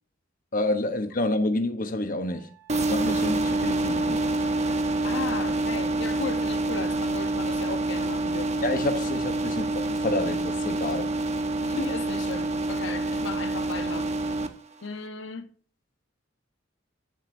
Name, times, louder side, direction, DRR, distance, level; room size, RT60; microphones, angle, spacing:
voice 1, 0.5-4.2 8.6-11.1, left 1 dB, 45° left, 1.0 m, -29 dB
Wind instrument woodwind instrument, 2.2-6.6, left 3 dB, 70° right, 3.2 m, -49 dB
sound 1, 2.7-14.5, right 2 dB, 35° right, 0.9 m, -27 dB
voice 2, 5.0-8.6 11.6-14.1 14.8-15.5, left 3 dB, 70° left, 1.1 m, -35 dB
16.0 x 7.7 x 2.7 m
head